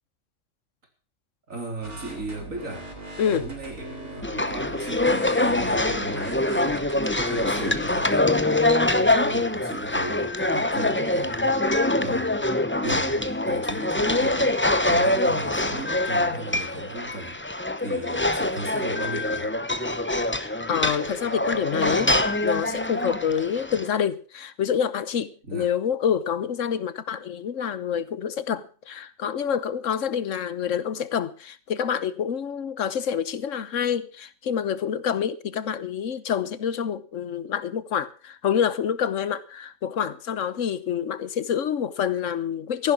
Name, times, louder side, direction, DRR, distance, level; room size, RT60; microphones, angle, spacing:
voice 1, 1.5-2.9 3.3-6.9 7.3-12.5 12.8-14.6 14.9-17.4 17.8-19.5 25.4-25.7, right 2 dB, 85° right, 4.1 m, -36 dB
sound 1, 1.8-8.1, right 1 dB, 45° right, 3.6 m, -40 dB
voice 2, 3.2-3.5 20.7-22.2 22.4-42.9, left 8 dB, 70° left, 1.3 m, -27 dB
sound 2, 4.2-23.9, left 2 dB, 10° left, 0.8 m, -24 dB
14.5 x 11.5 x 5.9 m
omnidirectional pair, 1.3 m